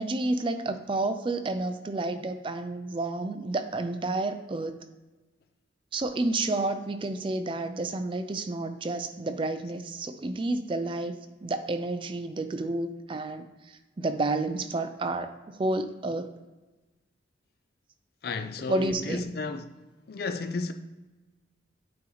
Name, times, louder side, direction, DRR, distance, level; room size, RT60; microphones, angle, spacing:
voice 1, 0.0-4.8 5.9-15.3 15.6-16.3 18.7-19.3, right 2 dB, 25° right, 0.4 m, -30 dB
voice 2, 18.2-19.8 20.1-20.7, left 4 dB, 55° left, 0.4 m, -33 dB
8.6 x 2.9 x 3.9 m
head